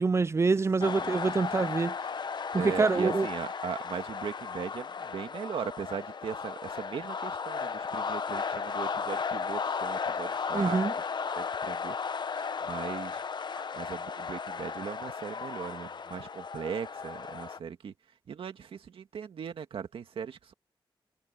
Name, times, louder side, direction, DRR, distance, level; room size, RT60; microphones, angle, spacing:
voice 1, 0.0-2.0 2.5-3.3 10.5-10.9, right 4 dB, 30° right, 0.4 m, -26 dB
sound 1, 0.8-17.6, left 5 dB, 55° left, 0.8 m, -35 dB
voice 2, 0.8-1.2 2.6-10.8 11.4-12.2 12.6-13.2 13.7-17.9 18.3-20.5, right 7 dB, 90° right, 2.1 m, -38 dB
cardioid pair, 80°, 9 cm